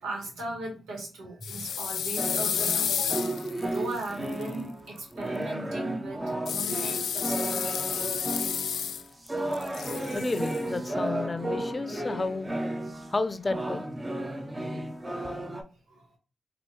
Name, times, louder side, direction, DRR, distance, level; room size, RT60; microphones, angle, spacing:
voice 1, 0.0-3.3 3.5-8.2 9.5-10.2 15.1-15.3 15.9-16.0, right 2 dB, 90° right, -1 dB, 1.6 m, -39 dB
sound 1, 1.4-4.5 6.5-9.3 9.5-10.6, left 8 dB, 80° left, 0.3 m, -31 dB
sound 2, 2.2-13.2 13.5-15.6, right 1 dB, 25° right, 1.0 m, -33 dB
voice 2, 10.1-12.6 13.1-13.8, left 3 dB, 35° left, 12 dB, 0.6 m, -31 dB
4.4 x 2.7 x 3.0 m, 0.35 s
supercardioid pair, 40°, 0 cm